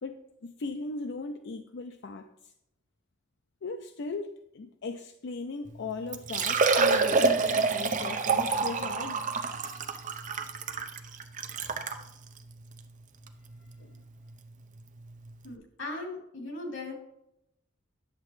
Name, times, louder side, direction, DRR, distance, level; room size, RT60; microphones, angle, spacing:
voice 1, 0.0-2.5 3.6-9.2 13.8-13.9, left 3 dB, 65° left, 7 dB, 0.5 m, -38 dB
Liquid, 5.7-5.8 6.1-12.0 12.7-12.8 13.3-13.4 15.0-15.1 15.3-15.4, right 4 dB, 40° right, 0.7 m, -27 dB
voice 2, 15.4-16.9, left 2 dB, 90° left, 0 dB, 2.9 m, -38 dB
10.5 x 7.1 x 3.2 m, 0.81 s
head